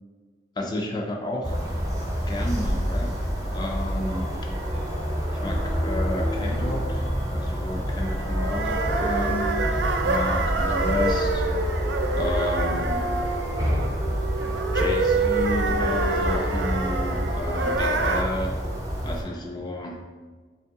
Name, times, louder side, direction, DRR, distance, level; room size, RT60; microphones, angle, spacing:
voice 1, 0.6-1.5 2.3-4.4 5.3-9.5 10.0-11.5 12.1-13.0 14.7-18.6 19.0-20.0, left 1 dB, 25° left, 1 dB, 0.3 m, -31 dB
sound 1, 1.4-19.2, equal, 20° right, 0.7 m, -28 dB
sound 2, 7.9-18.2, right 3 dB, 80° right, 0.4 m, -27 dB
3.7 x 3.2 x 3.5 m, 1.4 s
head